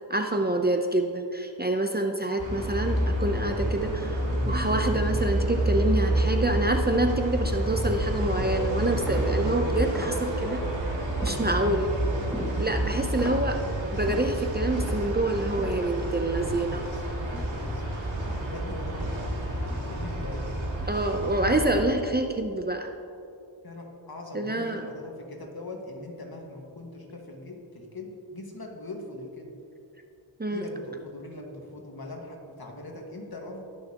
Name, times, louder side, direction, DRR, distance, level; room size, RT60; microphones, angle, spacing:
voice 1, 0.1-4.2 4.4-10.6 11.2-11.9 12.6-13.6 13.9-16.8 20.9-22.9 24.3-24.9 30.4-30.6, right 1 dB, 20° right, 4 dB, 0.7 m, -27 dB
sound 1, 2.4-21.9, right 1 dB, 75° right, 2.2 m, -29 dB
sound 2, 9.1-10.6 11.2-11.9 12.3-17.9 18.2-20.2 20.6-20.9 21.4-21.9, equal, 5° right, 2.3 m, -41 dB
voice 2, 11.2-12.0 16.4-20.5 23.6-29.6 30.5-33.6, left 2 dB, 50° left, 1 dB, 1.8 m, -42 dB
19.5 x 6.5 x 3.0 m, 2.5 s
cardioid pair, 45°, 46 cm